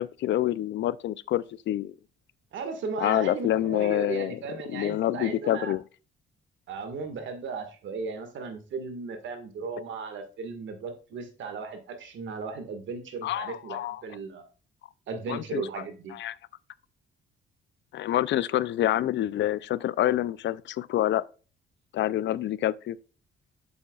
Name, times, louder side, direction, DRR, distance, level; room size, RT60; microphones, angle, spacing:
voice 1, 0.0-1.9 3.0-4.4 4.7-5.8 13.2-14.0 15.3-15.6 16.2-16.4 17.9-21.2 21.9-23.0, left 13 dB, 65° left, 0.4 m, -27 dB
voice 2, 2.5-5.8 6.7-14.4 15.1-16.1, right 4 dB, 70° right, 1.8 m, -36 dB
8.6 x 7.0 x 2.4 m
cardioid pair, 90°, 20 cm